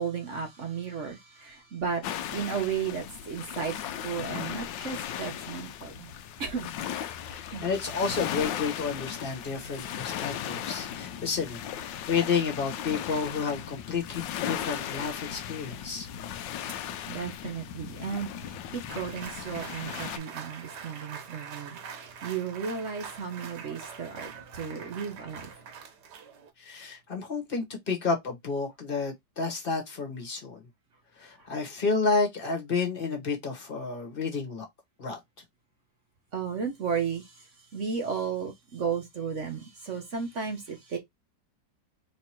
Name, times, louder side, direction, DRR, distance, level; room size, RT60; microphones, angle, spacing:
voice 1, 0.0-2.0 2.3-3.7 4.0-6.1 6.4-6.7 7.5-7.7 17.1-25.5 36.3-37.4 37.7-41.0, right 6 dB, 50° right, 1.0 m, -34 dB
sound 1, 2.0-20.2, left 10 dB, 80° left, 1.3 m, -37 dB
voice 2, 7.3-16.1 26.6-30.6 31.2-34.7 35.0-35.2, left 4 dB, 35° left, 1.3 m, -31 dB
sound 2, 18.9-26.5, right 6 dB, 70° right, 1.5 m, -43 dB
3.4 x 2.9 x 4.4 m
omnidirectional pair, 2.0 m